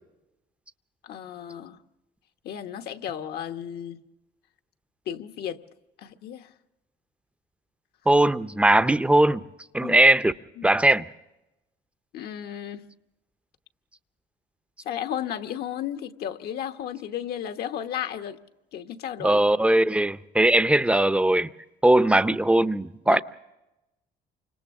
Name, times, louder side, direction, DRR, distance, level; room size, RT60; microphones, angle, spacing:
voice 1, 1.0-1.8 2.4-4.0 5.1-5.6 6.0-6.5 9.8-10.0 10.6-10.7 12.1-12.9 14.8-18.4 18.7-19.4 23.1-23.2, left 9 dB, 70° left, 1.2 m, -34 dB
voice 2, 8.1-9.4 9.7-10.3 10.6-11.0 19.2-21.5 21.8-23.2, right 1 dB, 5° right, 0.6 m, -19 dB
29.0 x 26.0 x 3.6 m
cardioid pair, 110°, 17 cm